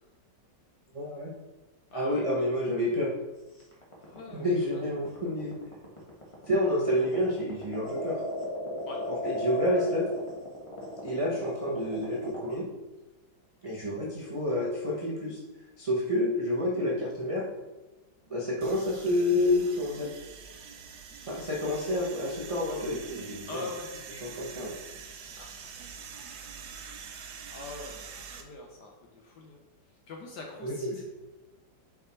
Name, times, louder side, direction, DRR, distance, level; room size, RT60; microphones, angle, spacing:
voice 1, 0.9-1.3 1.9-3.1 4.3-5.6 6.5-8.2 9.2-10.1 11.0-12.6 13.6-15.4 15.8-17.4 18.3-20.1 21.2-23.7 24.2-24.7 30.6-30.9, left 1 dB, 25° right, -5 dB, 0.8 m, -29 dB
voice 2, 1.9-2.5 4.0-4.5 4.7-4.8 8.9-9.0 23.5-23.9 24.3-24.5 25.4-25.5 27.5-29.6 30.1-31.0, left 3 dB, 65° left, 0 dB, 1.3 m, -43 dB
sound 1, 3.6-12.5, left 1 dB, 20° left, 1.3 m, -36 dB
sound 2, 18.6-28.4, right 6 dB, 65° right, 1.2 m, -45 dB
6.1 x 5.0 x 4.4 m, 1.1 s
omnidirectional pair, 2.0 m